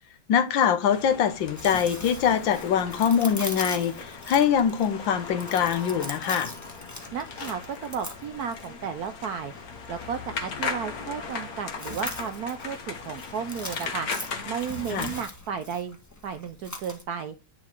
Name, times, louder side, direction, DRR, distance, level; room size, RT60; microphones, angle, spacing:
voice 1, 0.3-6.5 14.9-15.1, left 8 dB, 65° left, 1.7 m, -23 dB
sound 1, 0.9-15.2, left 4 dB, 50° left, 1.6 m, -38 dB
Chewing mastication, 1.3-17.0, left 1 dB, 10° left, 1.3 m, -42 dB
voice 2, 7.1-9.5 9.9-14.1 14.5-16.0 16.2-17.3, right 7 dB, 75° right, 0.8 m, -33 dB
10.5 x 4.0 x 4.5 m
omnidirectional pair, 2.3 m